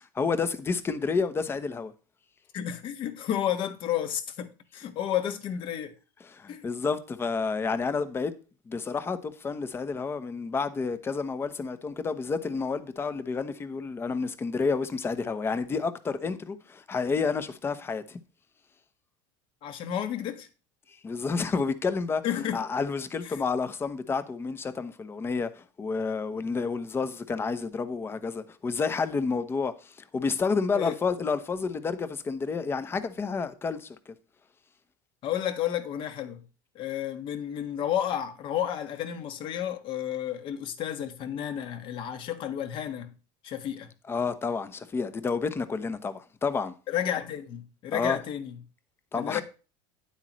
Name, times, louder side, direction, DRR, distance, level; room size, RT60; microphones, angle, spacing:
voice 1, 0.2-1.9 6.3-8.3 8.7-18.2 21.0-22.2 22.5-34.1 44.1-46.7 47.9-48.2 49.1-49.4, left 4 dB, 20° left, 1.0 m, -30 dB
voice 2, 2.5-5.9 6.5-6.7 19.6-20.5 22.2-22.6 23.2-23.4 30.7-30.9 35.2-36.4 36.7-43.1 43.4-43.9 46.9-48.6 49.1-49.4, left 10 dB, 45° left, 1.5 m, -31 dB
9.8 x 8.2 x 3.1 m
supercardioid pair, 130°, 11 cm